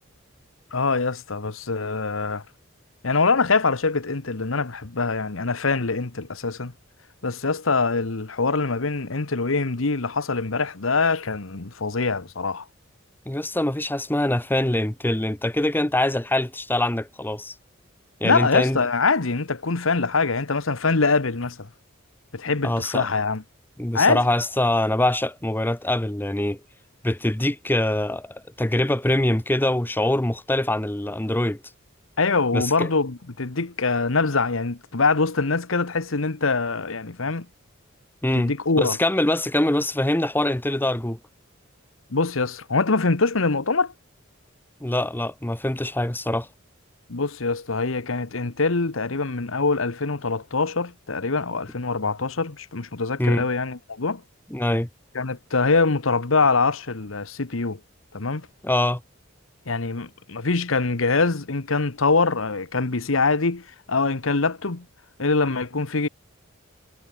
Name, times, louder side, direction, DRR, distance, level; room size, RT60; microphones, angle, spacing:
voice 1, 0.7-2.4 3.0-6.7 7.2-12.6 18.2-21.6 22.3-23.4 23.9-24.2 32.2-37.5 38.3-39.0 42.1-43.9 47.1-54.2 55.1-57.8 58.1-58.4 59.7-64.8 65.2-66.1, left 4 dB, 80° left, 1.3 m, -24 dB
voice 2, 13.3-17.5 18.2-18.8 22.6-23.1 23.8-26.6 27.0-31.6 32.5-32.9 38.2-41.2 44.8-46.5 53.2-53.5 54.5-54.9 58.6-59.0, left 1 dB, 10° left, 0.9 m, -24 dB
head